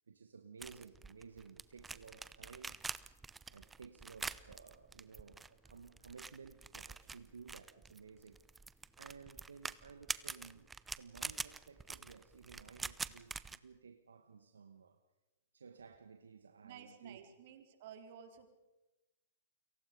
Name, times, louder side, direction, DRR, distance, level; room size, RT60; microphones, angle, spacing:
voice 1, 0.1-2.8 3.3-8.4 9.0-15.0 15.5-17.2, right 5 dB, 85° right, 1.5 m, -56 dB
sound 1, 0.6-13.6, right 4 dB, 10° right, 0.8 m, -46 dB
voice 2, 16.6-18.5, right 8 dB, 55° right, 4.0 m, -54 dB
29.5 x 23.5 x 5.3 m
hypercardioid pair, 115°, 0 cm